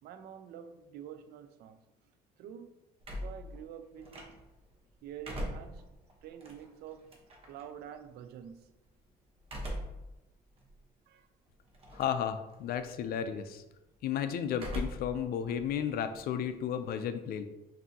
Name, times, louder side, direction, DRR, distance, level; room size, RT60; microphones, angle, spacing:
voice 1, 0.0-1.8 2.4-2.7 3.2-4.4 5.0-5.9 6.2-7.1 7.5-8.7 11.1-11.3, right 9 dB, 70° right, 0.4 m, -47 dB
sound 1, 3.0-4.6 5.0-7.6 9.4-10.1 10.6-10.7 11.7-12.2 12.5-13.0 14.5-15.2 15.5-16.9, equal, 35° right, 0.9 m, -41 dB
voice 2, 11.9-13.6 14.0-17.5, left 8 dB, 65° left, 0.4 m, -33 dB
5.6 x 2.7 x 2.7 m
cardioid pair, 110°, 17 cm